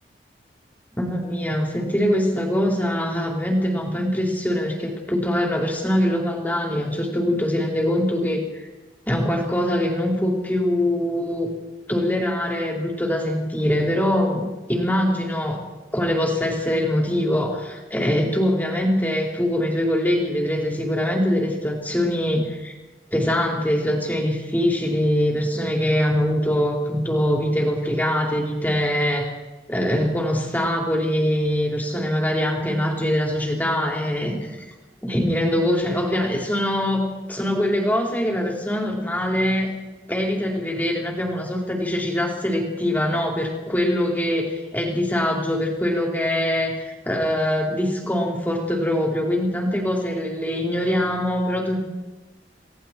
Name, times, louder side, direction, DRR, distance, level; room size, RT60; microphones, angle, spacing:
voice 1, 0.9-8.7 9.1-11.5 11.9-15.6 15.9-22.7 23.1-29.3 29.7-34.5 35.0-39.7 40.1-51.8, left 1 dB, 10° left, -1 dB, 4.4 m, -23 dB
29.5 x 19.0 x 4.6 m, 1.2 s
head